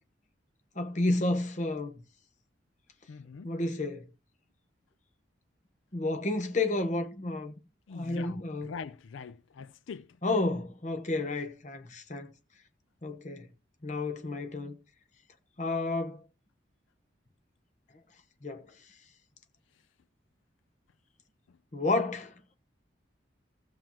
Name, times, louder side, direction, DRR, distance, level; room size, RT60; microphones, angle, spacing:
voice 1, 0.7-2.0 3.4-4.1 5.9-7.5 7.9-8.7 10.2-12.3 13.0-13.5 13.8-14.8 15.6-16.2 18.4-18.6 21.7-22.3, left 2 dB, 40° left, 1.0 m, -31 dB
voice 2, 3.1-3.5 7.9-8.4 8.7-10.1, left 5 dB, 85° left, 0.4 m, -42 dB
15.0 x 7.5 x 2.9 m
head